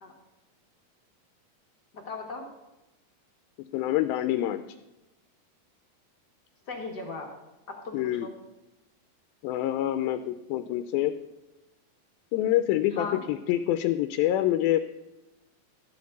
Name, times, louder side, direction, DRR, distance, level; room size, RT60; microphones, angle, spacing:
voice 1, 1.9-2.4 6.7-7.3 7.7-8.3 12.9-13.2, left 3 dB, 50° left, 1 dB, 1.3 m, -37 dB
voice 2, 3.7-4.6 7.9-8.3 9.4-11.2 12.3-14.8, left 13 dB, 90° left, 10 dB, 2.4 m, -26 dB
13.0 x 5.2 x 8.0 m, 0.99 s
omnidirectional pair, 4.1 m